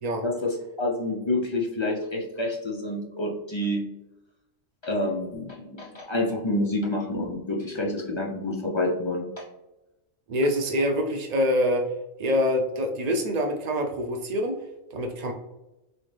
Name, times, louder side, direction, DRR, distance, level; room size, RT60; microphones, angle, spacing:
voice 1, 0.2-3.9 4.8-9.4, left 1 dB, 45° left, -1 dB, 0.3 m, -28 dB
voice 2, 10.3-11.8 12.2-14.5 14.9-15.3, equal, 80° right, 3 dB, 0.3 m, -25 dB
4.1 x 3.6 x 3.2 m, 0.98 s
omnidirectional pair, 1.3 m